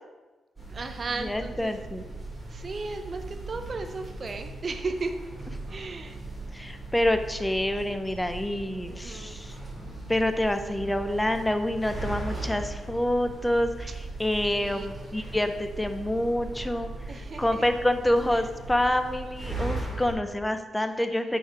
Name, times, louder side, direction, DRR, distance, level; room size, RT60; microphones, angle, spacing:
sound 1, 0.6-20.1, right 2 dB, 15° right, 2.9 m, -38 dB
voice 1, 0.7-1.8 2.5-5.1 5.7-6.2 8.9-9.4 14.5-14.9 17.1-17.7 18.3-18.4 21.1-21.4, right 3 dB, 35° right, 7 dB, 0.7 m, -35 dB
voice 2, 1.2-2.0 6.5-9.5 10.1-13.9 14.2-16.9 17.4-21.4, left 1 dB, 5° left, 8 dB, 0.5 m, -27 dB
7.9 x 4.7 x 5.8 m, 1.2 s
wide cardioid pair, 140°, 0 cm